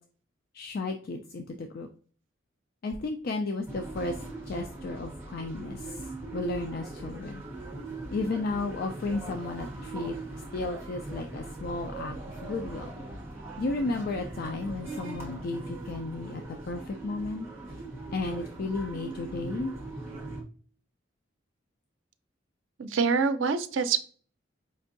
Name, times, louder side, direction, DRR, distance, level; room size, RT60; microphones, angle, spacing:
voice 1, 0.5-1.9 2.8-4.2 4.5-7.4 8.1-10.1 10.5-12.9 13.6-17.5 18.1-19.7, left 3 dB, 50° left, 5 dB, 0.4 m, -33 dB
sound 1, 3.7-20.4, right 2 dB, 15° right, 1.0 m, -40 dB
voice 2, 22.8-24.0, right 5 dB, 85° right, 9 dB, 0.4 m, -25 dB
5.2 x 2.6 x 2.5 m, 0.44 s
head